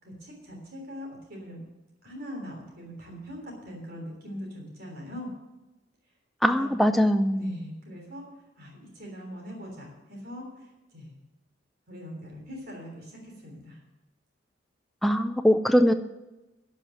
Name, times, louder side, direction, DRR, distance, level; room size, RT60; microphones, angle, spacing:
voice 1, 0.0-1.6 2.0-5.3 6.4-6.7 7.3-8.2 8.6-10.7 10.9-11.2 11.9-13.8, equal, 55° right, 0 dB, 3.4 m, -41 dB
voice 2, 6.4-7.6 15.0-15.9, equal, ahead, 7 dB, 0.4 m, -22 dB
12.0 x 5.7 x 9.0 m, 1.0 s
head